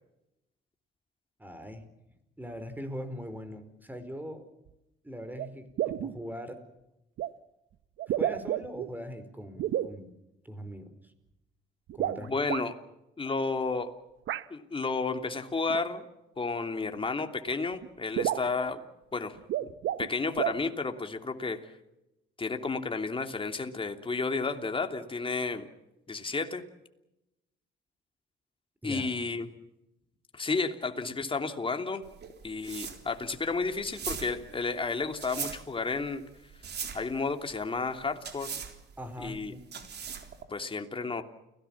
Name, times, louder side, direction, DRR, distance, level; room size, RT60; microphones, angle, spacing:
voice 1, 1.4-1.9 2.4-4.4 5.0-6.6 8.1-10.2 10.4-11.1 11.9-12.3 28.8-29.2 39.0-39.6, equal, 10° right, 11 dB, 4.9 m, -41 dB
sound 1, 4.7-4.8 5.4-5.5 5.8-6.2 7.2-7.3 8.0-8.9 9.6-9.9 11.9-12.6 14.3-14.4 15.7-15.8 17.0-17.1 17.5-17.6 17.8-17.9 18.2-18.5 19.4-20.1 20.4-20.6, right 12 dB, 80° right, 1.0 m, -31 dB
voice 2, 12.2-12.8 13.2-13.9 14.5-16.0 16.4-18.8 19.1-19.4 19.6-19.7 20.0-21.7 22.4-25.7 26.1-26.6 28.8-29.5 30.3-32.0 32.4-36.2 36.9-38.5 39.2-39.5 40.5-41.2, left 4 dB, 25° left, 6 dB, 3.0 m, -32 dB
sound 2, 32.0-40.4, right 7 dB, 55° right, 3.9 m, -40 dB
30.0 x 18.0 x 7.3 m, 0.91 s
cardioid pair, 90°, 20 cm